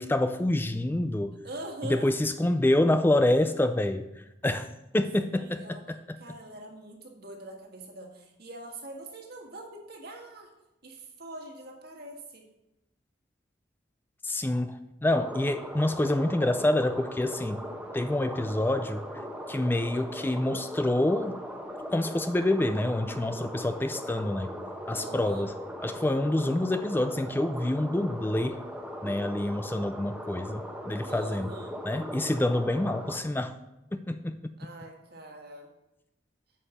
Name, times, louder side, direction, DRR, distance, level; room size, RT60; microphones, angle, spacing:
voice 1, 0.0-1.3 1.8-4.7 4.9-6.0 14.2-17.6 17.9-19.0 19.5-21.4 21.9-24.5 24.9-25.5 25.8-28.6 29.0-31.5 31.8-33.5 33.9-34.4, left 1 dB, 10° left, 10 dB, 0.4 m, -27 dB
voice 2, 1.4-2.1 5.3-5.8 6.2-10.5 10.8-12.5 24.9-25.5 31.0-31.8 34.6-35.7, right 1 dB, 60° right, 1 dB, 1.7 m, -43 dB
sound 1, 15.1-33.2, equal, 5° right, 0.9 m, -39 dB
8.6 x 5.3 x 7.1 m, 0.92 s
head